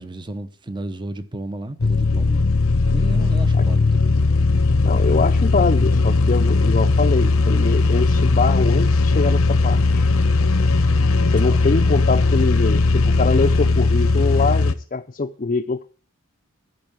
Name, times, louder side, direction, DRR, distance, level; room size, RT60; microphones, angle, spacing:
voice 1, 0.0-2.5 2.9-4.1 11.4-11.6, right 1 dB, 20° right, 0.8 m, -33 dB
sound 1, 1.8-14.7, left 3 dB, 85° left, 0.9 m, -18 dB
voice 2, 4.8-10.1 11.3-15.9, left 4 dB, 35° left, 0.6 m, -24 dB
13.0 x 5.4 x 8.9 m
head